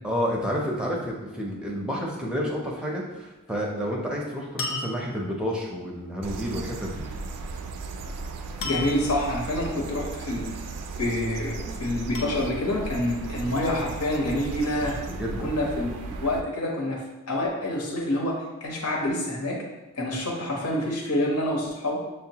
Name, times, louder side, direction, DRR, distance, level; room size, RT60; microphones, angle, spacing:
voice 1, 0.0-7.1 14.8-15.5, equal, 5° right, -2 dB, 0.5 m, -30 dB
sound 1, 4.6-5.5 8.6-9.2 10.6-11.1 12.1-12.9 13.9-14.8, left 3 dB, 60° left, 0.5 m, -36 dB
sound 2, 6.2-16.4, right 3 dB, 85° right, 0.3 m, -36 dB
voice 2, 8.6-10.5 11.0-15.0 15.4-19.6 19.9-22.0, left 1 dB, 90° left, -1 dB, 0.9 m, -27 dB
6.2 x 2.1 x 2.8 m, 1.1 s
head